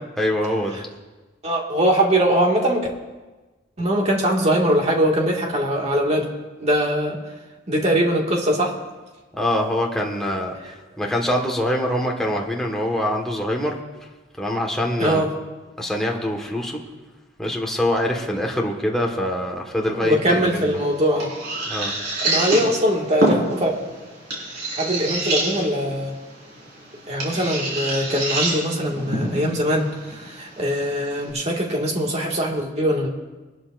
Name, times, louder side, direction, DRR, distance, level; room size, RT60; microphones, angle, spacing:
voice 1, 0.2-0.9 9.3-13.8 14.4-15.2 15.8-16.8 17.4-20.6 21.7-21.9, left 1 dB, 5° left, -1 dB, 1.5 m, -24 dB
voice 2, 1.4-2.9 3.8-6.3 6.6-7.2 7.7-8.7 15.0-15.3 19.9-21.3 22.2-23.7 24.8-26.1 27.1-33.1, equal, 35° right, -1 dB, 2.0 m, -21 dB
sound 1, 20.3-31.3, right 2 dB, 60° right, 5.1 m, -28 dB
22.0 x 12.5 x 2.6 m, 1.2 s
head